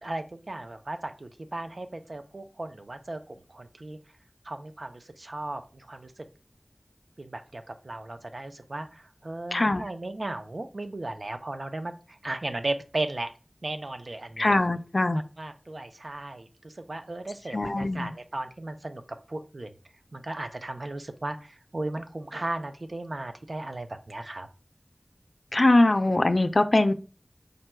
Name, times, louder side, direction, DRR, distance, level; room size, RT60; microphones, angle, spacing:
voice 1, 0.0-4.0 4.4-6.1 7.2-13.3 13.6-14.5 15.1-19.0 19.3-19.7 20.1-24.5, right 2 dB, 75° right, 8 dB, 0.6 m, -36 dB
voice 2, 9.5-9.8 14.4-15.2 17.5-18.1 25.5-26.9, left 2 dB, 65° left, 10 dB, 0.4 m, -22 dB
5.1 x 2.2 x 4.4 m, 0.34 s
wide cardioid pair, 45°, 0 cm